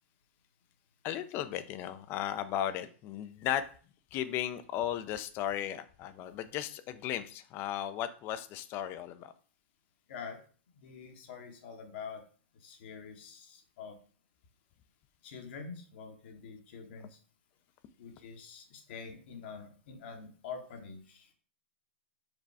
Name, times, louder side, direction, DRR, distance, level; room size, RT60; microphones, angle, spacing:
voice 1, 1.0-3.7 4.1-9.3, left 11 dB, 35° left, 12 dB, 0.4 m, -35 dB
voice 2, 10.7-12.2 12.6-14.0 15.2-17.2 18.0-21.3, left 5 dB, 60° left, 4 dB, 1.1 m, -46 dB
4.9 x 2.3 x 4.6 m, 0.41 s
hypercardioid pair, 125°, 6 cm